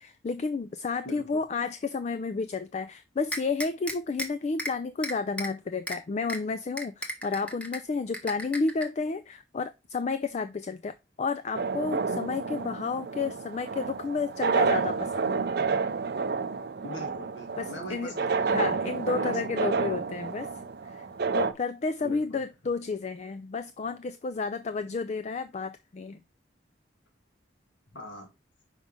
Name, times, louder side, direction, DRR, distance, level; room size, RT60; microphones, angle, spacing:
voice 1, 0.0-15.4 17.6-18.1 18.5-20.5 20.8-21.1 21.3-26.2, left 4 dB, 40° left, 0.3 m, -31 dB
voice 2, 1.0-1.4 16.8-18.5 19.2-19.6 22.0-22.4 27.9-28.3, equal, 75° left, 2.2 m, -42 dB
sound 1, 3.3-4.3 4.6-4.7 5.0-5.5 5.9-6.0 6.3-6.4 6.8-7.8 8.1-8.8, equal, 5° left, 0.9 m, -34 dB
sound 2, 11.5-21.5, right 5 dB, 60° right, 0.5 m, -29 dB
5.4 x 4.8 x 3.6 m
head